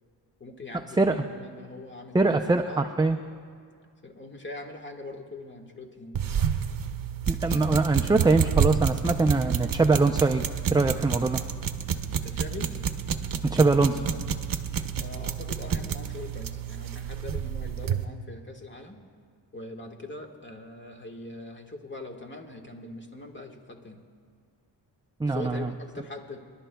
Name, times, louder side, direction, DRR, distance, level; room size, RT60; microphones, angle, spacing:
voice 1, 0.4-2.9 4.0-6.4 12.2-12.7 13.9-14.3 14.9-19.0 19.5-24.0 25.2-26.4, left 2 dB, 25° left, 2 dB, 1.6 m, -42 dB
voice 2, 2.1-3.2 7.3-11.4 13.4-14.0 25.2-25.7, right 3 dB, 10° right, 6 dB, 0.4 m, -23 dB
sound 1, 6.1-18.1, right 7 dB, 50° right, 0.8 m, -29 dB
28.0 x 11.5 x 2.3 m, 2.1 s
cardioid pair, 80°, 44 cm